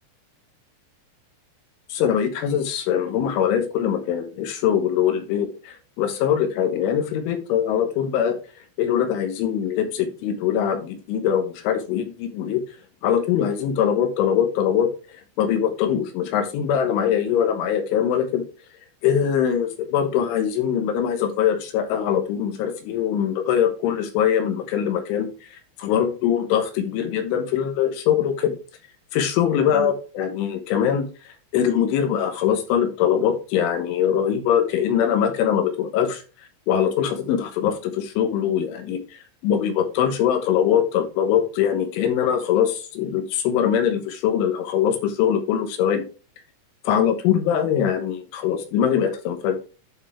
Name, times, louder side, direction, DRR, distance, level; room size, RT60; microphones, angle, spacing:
voice 1, 1.9-8.4 8.8-12.6 13.0-14.9 15.4-18.4 19.0-28.5 29.1-31.0 31.5-36.2 36.7-39.0 39.4-46.0 46.9-49.6, left 9 dB, 80° left, 6 dB, 3.5 m, -22 dB
11.0 x 4.7 x 3.4 m, 0.33 s
omnidirectional pair, 5.7 m